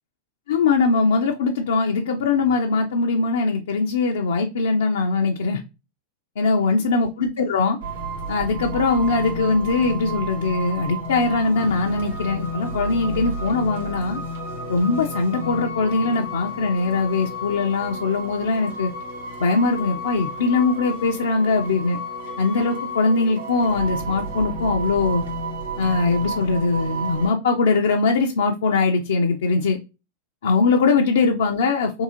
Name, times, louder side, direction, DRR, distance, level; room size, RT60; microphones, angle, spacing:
voice 1, 0.5-5.6 6.4-7.8 8.3-14.2 14.7-18.9 19.4-22.0 22.4-25.2 25.8-29.8 30.4-32.0, left 4 dB, 75° left, 2 dB, 0.5 m, -21 dB
sound 1, 7.8-27.3, right 1 dB, 85° right, 1.9 m, -31 dB
3.7 x 2.6 x 2.8 m, 0.28 s
hypercardioid pair, 95°, 0 cm